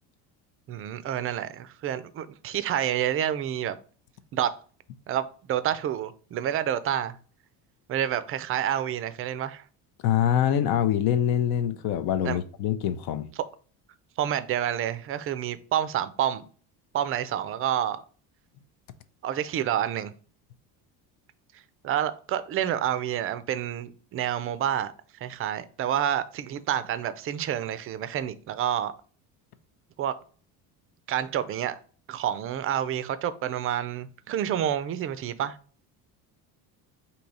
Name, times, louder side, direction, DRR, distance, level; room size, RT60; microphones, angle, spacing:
voice 1, 0.7-3.8 4.3-4.6 5.1-7.2 7.9-9.6 12.2-12.4 14.2-16.4 16.9-18.0 19.2-20.1 21.8-24.9 25.2-28.9 30.0-30.2 31.1-31.8 32.1-35.6, right 10 dB, 35° right, 0.4 m, -28 dB
voice 2, 10.0-13.3, left 10 dB, 70° left, 0.6 m, -24 dB
4.7 x 2.8 x 4.0 m
cardioid pair, 140°, 38 cm